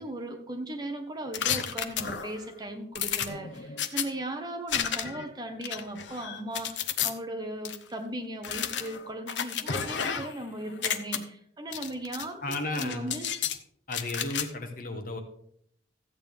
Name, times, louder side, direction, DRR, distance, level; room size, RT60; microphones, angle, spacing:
voice 1, 0.0-13.3, right 1 dB, 20° right, 5 dB, 1.0 m, -37 dB
sound 1, 1.3-2.4 2.9-4.0 4.7-5.2 5.6-7.1 7.6-7.8 8.4-10.4 10.7-11.2 11.7-12.2 12.5-13.6 13.9-14.4, left 8 dB, 75° left, 0.8 m, -32 dB
voice 2, 12.4-13.1 13.9-15.2, left 2 dB, 50° left, 5 dB, 1.3 m, -34 dB
13.5 x 8.6 x 3.6 m, 0.69 s
head